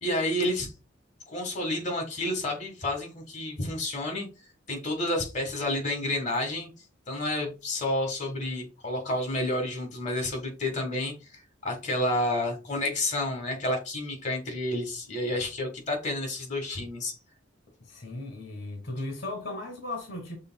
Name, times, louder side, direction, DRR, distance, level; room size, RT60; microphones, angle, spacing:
voice 1, 0.0-0.7 1.3-4.3 4.7-6.7 7.1-17.2, left 1 dB, 40° left, 1.5 m, -30 dB
voice 2, 17.8-20.4, left 2 dB, 55° left, 1.3 m, -36 dB
6.6 x 3.6 x 2.3 m
head